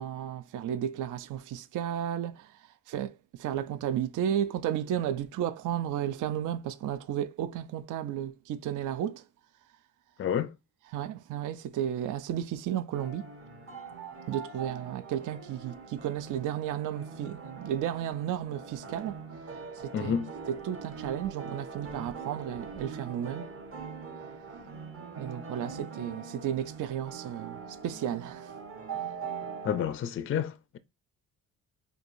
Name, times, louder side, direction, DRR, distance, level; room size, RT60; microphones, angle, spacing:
voice 1, 0.0-9.2 10.9-13.3 14.3-19.2 19.8-20.1 20.5-23.5 25.2-28.5, right 10 dB, 60° right, 0.5 m, -33 dB
voice 2, 10.2-10.5 19.9-20.3 29.6-30.8, left 8 dB, 35° left, 0.4 m, -30 dB
sound 1, 12.9-29.9, right 5 dB, 40° right, 1.0 m, -42 dB
4.5 x 2.6 x 2.5 m
cardioid pair, 85°, 35 cm